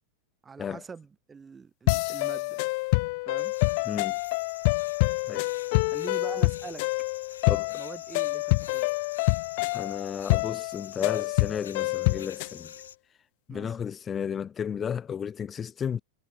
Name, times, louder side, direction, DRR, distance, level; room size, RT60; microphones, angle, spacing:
voice 1, 0.4-2.6 3.2-3.5 5.9-6.8 7.8-8.9 13.5-13.8, right 5 dB, 15° right, 4.9 m, -43 dB
sound 1, 1.9-12.6, left 28 dB, 45° left, 1.4 m, -27 dB
sound 2, 3.4-13.0, left 8 dB, 65° left, 6.5 m, -47 dB
voice 2, 3.8-4.2 5.3-5.5 7.5-7.8 9.7-12.7 13.5-16.0, left 7 dB, 20° left, 1.6 m, -33 dB
figure-of-eight pair, 90°, 0 cm